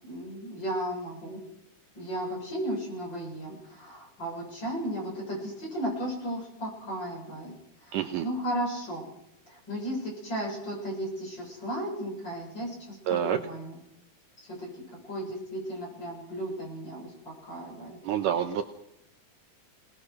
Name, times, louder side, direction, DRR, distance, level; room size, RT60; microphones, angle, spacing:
voice 1, 0.0-1.4 2.0-7.5 7.9-9.1 9.5-13.0 13.2-13.8 14.5-14.7 15.1-18.0, equal, 30° left, -2 dB, 7.7 m, -35 dB
voice 2, 7.9-8.3 13.1-13.4 18.0-18.6, right 9 dB, 70° right, 7 dB, 2.2 m, -27 dB
24.5 x 19.5 x 6.4 m, 0.79 s
omnidirectional pair, 4.3 m